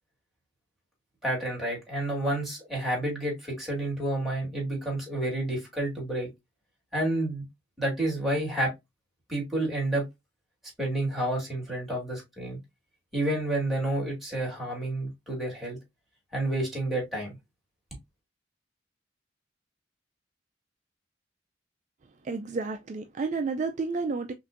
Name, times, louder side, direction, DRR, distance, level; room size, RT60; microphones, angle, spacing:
voice 1, 1.2-6.3 6.9-7.5 7.8-8.7 9.3-10.0 10.8-12.6 13.1-15.8 16.3-17.4, right 1 dB, ahead, 2.1 m, -29 dB
voice 2, 22.2-24.3, right 4 dB, 40° right, 0.4 m, -31 dB
5.8 x 2.6 x 2.5 m
head